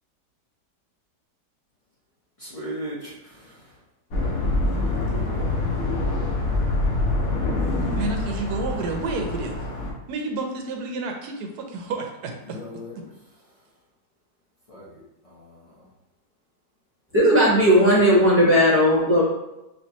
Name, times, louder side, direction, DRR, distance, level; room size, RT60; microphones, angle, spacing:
voice 1, 2.4-3.7 12.4-12.9 14.7-15.9, equal, 45° left, 0.4 m, -38 dB
sound 1, 4.1-9.9, left 2 dB, 60° left, 1.2 m, -25 dB
voice 2, 8.0-9.6 10.1-12.6, right 3 dB, 75° right, 1.1 m, -30 dB
voice 3, 17.1-19.2, equal, 10° right, 0.8 m, -16 dB
4.3 x 2.9 x 2.8 m
omnidirectional pair, 1.8 m